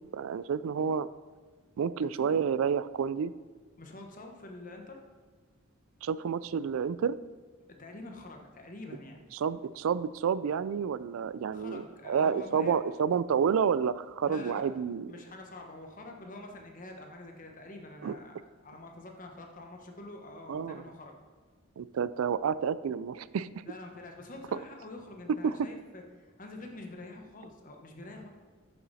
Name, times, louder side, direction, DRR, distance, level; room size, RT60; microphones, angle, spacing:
voice 1, 0.1-1.1 1.8-3.3 6.0-7.2 9.4-15.1 18.0-18.2 20.5-20.8 21.8-23.5 24.5-24.6 25.4-25.6, right 7 dB, 75° right, 16 dB, 0.3 m, -29 dB
voice 2, 3.8-5.0 7.7-9.2 11.5-12.8 14.3-14.7 15.1-21.1 23.7-28.3, left 2 dB, 40° left, 2 dB, 1.1 m, -46 dB
8.7 x 7.1 x 4.1 m, 1.5 s
head